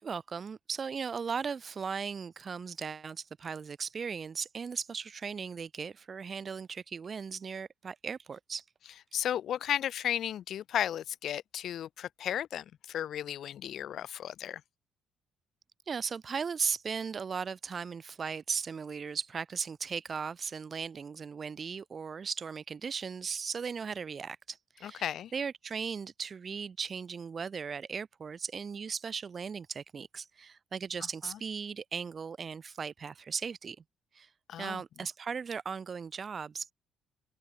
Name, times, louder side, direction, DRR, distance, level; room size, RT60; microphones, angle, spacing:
voice 1, 0.0-8.6 15.9-25.0 25.3-33.8 34.1-34.3 34.6-36.7, right 6 dB, 30° right, 5.1 m, -37 dB
voice 2, 9.1-14.6 24.8-25.3 31.0-31.4 34.5-34.8, left 10 dB, 50° left, 4.0 m, -34 dB
cardioid pair, 160°, 0 cm